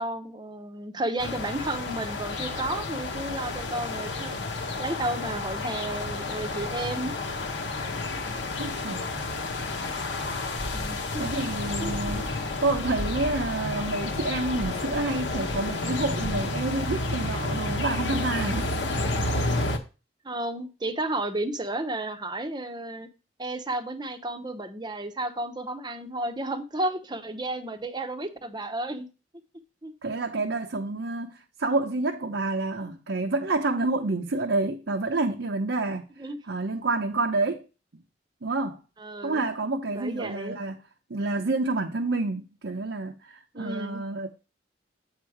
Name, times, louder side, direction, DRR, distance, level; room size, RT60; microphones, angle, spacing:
voice 1, 0.0-7.1 10.7-11.3 11.8-12.2 20.2-23.1 23.4-29.1 29.8-29.9 36.2-36.4 39.0-39.4 39.9-40.6 43.5-44.0, right 1 dB, 25° right, 0.8 m, -32 dB
sound 1, 1.2-19.8, left 2 dB, 85° left, 1.2 m, -31 dB
voice 2, 8.6-9.1 11.2-18.7 30.0-36.1 36.4-37.6 38.4-38.8 39.2-40.8 41.1-44.3, right 2 dB, 80° right, 0.8 m, -28 dB
8.1 x 4.8 x 4.8 m
head